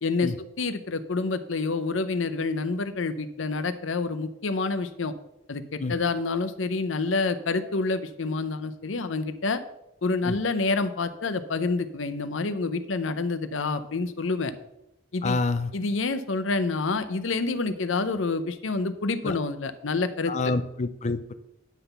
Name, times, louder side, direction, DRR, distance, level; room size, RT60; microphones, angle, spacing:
voice 1, 0.0-5.1 5.5-9.6 10.0-14.5 15.1-15.4 15.7-20.5, left 3 dB, 85° left, 11 dB, 0.7 m, -28 dB
voice 2, 15.2-15.7 19.2-19.3 20.3-21.3, left 3 dB, 35° left, 12 dB, 0.5 m, -27 dB
10.0 x 4.0 x 6.7 m, 0.85 s
head